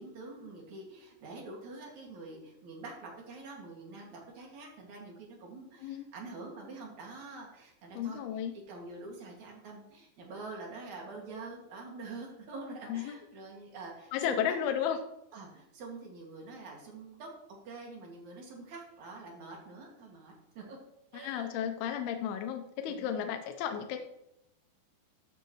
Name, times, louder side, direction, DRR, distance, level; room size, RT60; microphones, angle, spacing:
voice 1, 0.0-8.2 8.7-14.6 15.3-20.8 21.1-21.5 22.9-23.3, right 3 dB, 55° right, -1 dB, 3.2 m, -46 dB
voice 2, 7.9-8.5 12.9-13.2 14.1-15.0 21.1-24.0, left 9 dB, 85° left, 6 dB, 2.7 m, -33 dB
13.0 x 8.1 x 3.1 m, 0.85 s
omnidirectional pair, 4.5 m